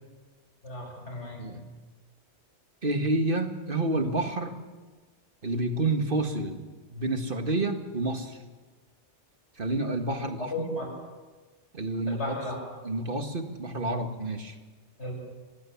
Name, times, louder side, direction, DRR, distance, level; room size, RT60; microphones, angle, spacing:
voice 1, 0.6-1.4 10.5-10.9 12.1-12.6 15.0-15.1, left 2 dB, 75° left, 0 dB, 7.8 m, -35 dB
voice 2, 2.8-4.6 5.4-6.6 6.9-8.4 9.6-10.8 11.7-12.4 12.8-14.6, right 2 dB, 50° right, 6 dB, 2.0 m, -29 dB
25.5 x 19.0 x 7.2 m, 1.3 s
omnidirectional pair, 1.2 m